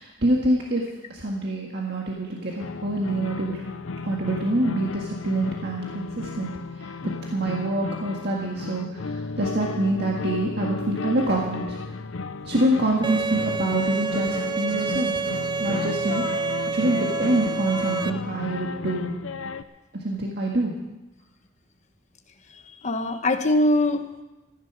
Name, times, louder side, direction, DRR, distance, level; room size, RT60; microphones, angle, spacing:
voice 1, 0.0-3.6 4.0-6.5 6.8-6.9 7.3-11.8 12.4-15.2 15.6-16.2 16.7-19.1 19.9-20.8, right 1 dB, 55° right, -2 dB, 1.8 m, -26 dB
sound 1, 2.6-19.6, left 4 dB, 90° left, 0.7 m, -33 dB
Bowed string instrument, 13.0-18.1, right 5 dB, 20° right, 0.4 m, -28 dB
voice 2, 22.5-24.2, left 1 dB, 35° left, 6 dB, 1.2 m, -23 dB
15.0 x 11.0 x 6.1 m, 1.0 s
head